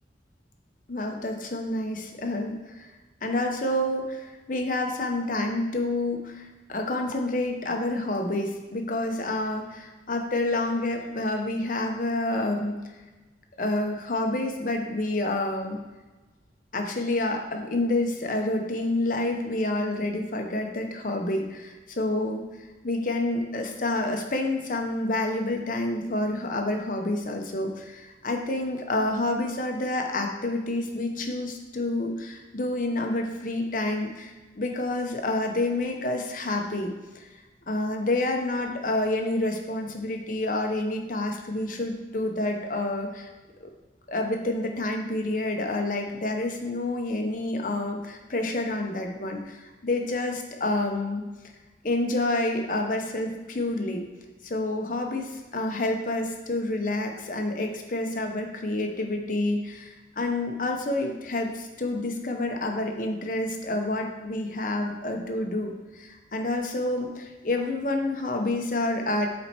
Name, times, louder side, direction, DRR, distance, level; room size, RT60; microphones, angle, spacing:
voice 1, 0.9-2.9 3.2-12.8 13.6-15.8 16.7-22.4 22.8-37.3 37.7-43.3 43.6-43.7 44.1-51.2 51.8-54.0 54.4-69.3, left 2 dB, 45° left, 3 dB, 0.9 m, -28 dB
7.6 x 4.3 x 4.4 m, 1.2 s
head